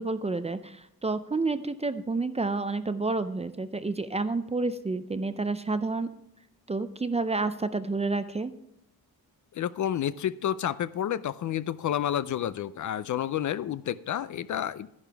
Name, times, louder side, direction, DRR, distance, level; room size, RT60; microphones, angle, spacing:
voice 1, 0.0-6.1 6.7-8.5, right 3 dB, 15° right, 11 dB, 0.4 m, -29 dB
voice 2, 9.5-14.9, left 10 dB, 50° left, 15 dB, 0.5 m, -30 dB
12.0 x 10.5 x 3.4 m, 0.82 s
wide cardioid pair, 165°, 38 cm